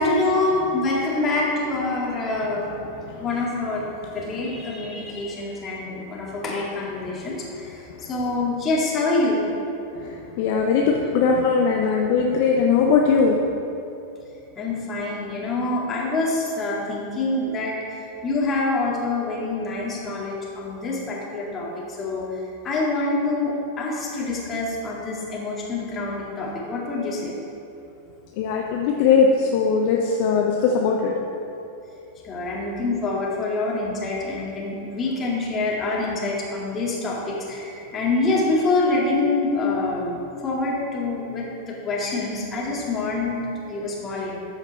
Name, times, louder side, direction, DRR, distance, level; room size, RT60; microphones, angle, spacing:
voice 1, 0.0-2.7 3.2-3.8 4.1-7.8 8.1-9.4 14.6-22.3 22.6-27.3 32.2-44.4, left 2 dB, 25° left, -4 dB, 2.2 m, -26 dB
voice 2, 10.0-13.4 28.4-31.1, left 5 dB, 50° left, 0 dB, 0.7 m, -20 dB
13.5 x 5.1 x 4.3 m, 2.8 s
figure-of-eight pair, 90°, 0 cm